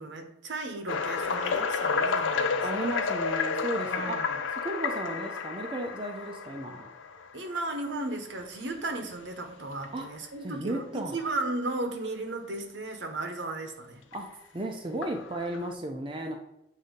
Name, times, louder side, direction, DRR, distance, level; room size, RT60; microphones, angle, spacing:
voice 1, 0.0-2.9 3.9-4.4 7.3-14.0, right 2 dB, 70° right, 6 dB, 0.9 m, -35 dB
sound 1, 0.9-7.7 8.4-8.6 9.1-9.2 9.8-9.9 11.2-11.3 14.1-14.2 15.0-15.7, left 5 dB, 85° left, 0.5 m, -31 dB
voice 2, 2.6-4.1 4.6-6.9 9.9-10.1 10.4-11.2 14.1-14.3 14.5-16.3, right 1 dB, 25° right, 2 dB, 0.6 m, -34 dB
7.9 x 2.8 x 5.1 m, 0.83 s
head